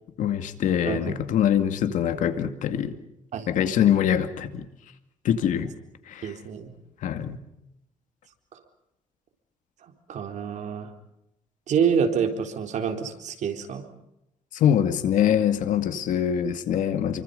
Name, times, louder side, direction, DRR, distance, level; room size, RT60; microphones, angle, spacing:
voice 1, 0.2-3.0 3.5-4.7 5.2-5.7 6.1-6.3 7.0-7.4 14.5-17.2, left 9 dB, 85° left, 9 dB, 2.3 m, -24 dB
voice 2, 0.9-1.2 3.3-3.5 6.2-6.7 8.5-8.6 9.8-10.9 11.7-13.8, right 7 dB, 70° right, 5 dB, 4.0 m, -27 dB
28.5 x 24.5 x 5.5 m, 0.83 s
cardioid pair, 110°, 13 cm